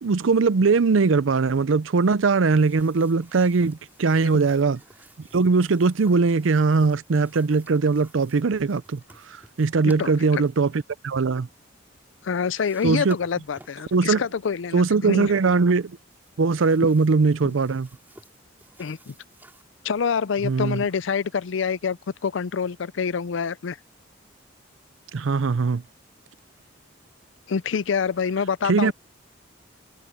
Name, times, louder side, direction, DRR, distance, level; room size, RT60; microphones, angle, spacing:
voice 1, 0.0-4.8 5.3-9.0 9.3-11.5 12.8-13.2 13.9-14.2 14.7-16.0 16.4-17.9 20.4-20.8 25.1-25.8 28.6-28.9, right 4 dB, 75° right, 0.5 m, -21 dB
sound 1, 2.5-10.6 11.9-12.1 12.3-14.0 14.6-14.9 15.7-19.6, right 1 dB, 10° right, 3.7 m, -53 dB
voice 2, 9.8-10.4 12.2-15.3 16.8-16.9 18.8-19.1 19.8-22.0 22.2-23.8 27.5-28.9, left 6 dB, 70° left, 0.5 m, -26 dB
head